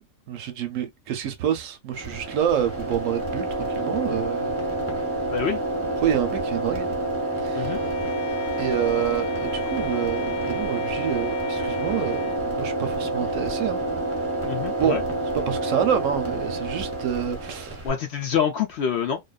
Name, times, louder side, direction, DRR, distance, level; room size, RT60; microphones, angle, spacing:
voice 1, 0.3-4.6 6.0-6.9 7.4-7.7 8.6-13.8 14.8-15.0 15.3-17.8, right 9 dB, 70° right, 0.9 m, -27 dB
sound 1, 1.9-17.9, right 1 dB, 10° right, 0.9 m, -28 dB
Bowed string instrument, 7.6-12.5, left 12 dB, 90° left, 1.1 m, -40 dB
voice 2, 14.5-15.0 17.8-19.2, left 8 dB, 60° left, 0.7 m, -26 dB
2.6 x 2.3 x 2.3 m
omnidirectional pair, 1.4 m